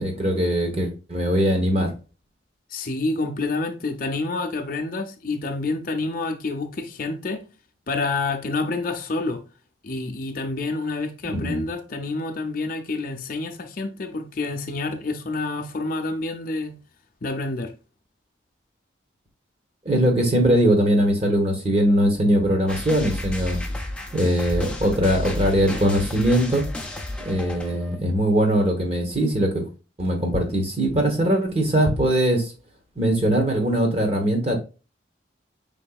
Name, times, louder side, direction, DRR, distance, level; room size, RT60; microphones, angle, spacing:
voice 1, 0.0-1.9 11.2-11.6 19.8-23.6 24.1-26.6 27.2-29.6 30.0-32.5 33.0-34.6, equal, 35° right, 1.1 m, -21 dB
voice 2, 2.7-7.4 7.9-9.4 9.8-16.8 17.2-17.7, left 3 dB, 45° left, 0.6 m, -28 dB
sound 1, 22.7-28.0, left 1 dB, 5° left, 0.5 m, -31 dB
5.3 x 3.8 x 2.3 m
head